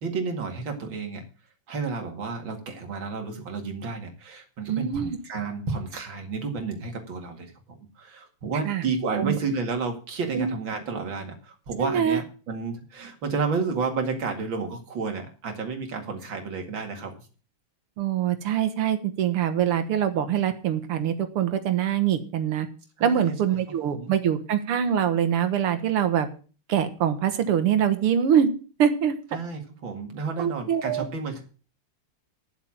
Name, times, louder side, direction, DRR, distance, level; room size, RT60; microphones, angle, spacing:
voice 1, 0.0-1.2 1.7-7.5 8.0-17.3 23.0-23.3 23.9-24.1 29.3-31.4, right 4 dB, 60° right, 4 dB, 2.9 m, -31 dB
voice 2, 4.7-5.2 8.7-8.8 9.2-9.4 10.3-10.5 11.8-12.2 18.0-22.7 23.0-26.3 26.7-28.5 28.8-29.1 30.4-31.0, right 9 dB, 85° right, 9 dB, 2.2 m, -24 dB
10.5 x 7.3 x 7.3 m, 0.37 s
omnidirectional pair, 2.4 m